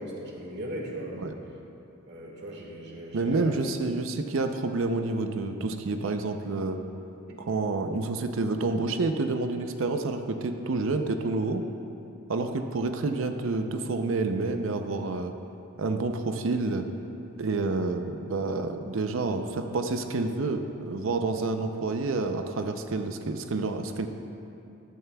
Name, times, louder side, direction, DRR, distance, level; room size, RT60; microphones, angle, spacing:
voice 1, 0.0-1.3 2.1-3.6 7.3-7.4, equal, 55° right, -1 dB, 1.6 m, -38 dB
voice 2, 3.1-6.8 7.4-11.7 12.3-15.3 15.8-16.8 17.4-24.1, right 3 dB, 70° right, 6 dB, 0.5 m, -29 dB
14.0 x 11.0 x 2.3 m, 2.8 s
head